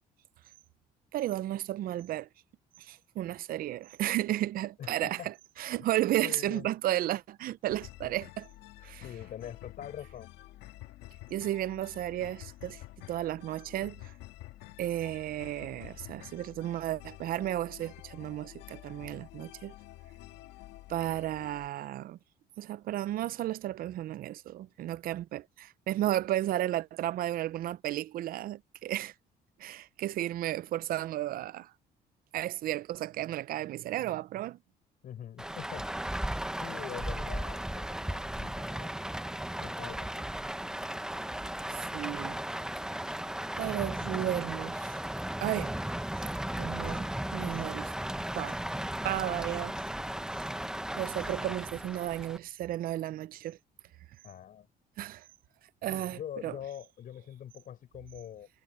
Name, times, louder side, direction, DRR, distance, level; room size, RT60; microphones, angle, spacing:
voice 1, 1.1-2.3 2.8-8.5 8.8-9.0 11.3-12.8 13.1-14.1 14.8-19.7 20.9-22.2 22.6-29.1 29.6-31.7 32.3-34.6 41.7-42.4 43.6-45.0 45.4-45.7 46.6-47.1 47.3-47.9 48.3-48.6 49.0-49.8 50.9-53.6 55.0-55.2 55.8-56.6, right 13 dB, 60° right, 0.5 m, -33 dB
voice 2, 4.8-5.3 5.8-5.9 6.2-6.6 9.0-10.3 35.0-35.9 36.6-38.9 39.6-40.3 54.2-54.7 55.8-58.5, left 10 dB, 55° left, 4.8 m, -44 dB
sound 1, 7.7-21.7, left 16 dB, 90° left, 2.0 m, -49 dB
Rain, 35.4-52.4, right 1 dB, 5° right, 0.8 m, -36 dB
cardioid pair, 110°, 17 cm